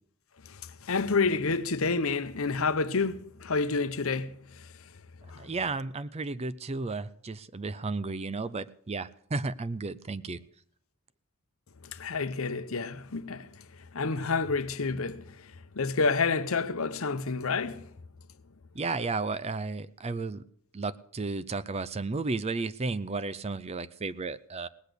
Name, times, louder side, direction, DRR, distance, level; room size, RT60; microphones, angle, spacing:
voice 1, 0.5-4.7 5.3-5.5 11.8-13.6 13.9-17.9, left 4 dB, 65° left, 0.9 m, -29 dB
voice 2, 5.4-10.4 18.7-20.4 20.7-24.7, right 3 dB, 30° right, 0.5 m, -33 dB
18.5 x 8.2 x 6.7 m
head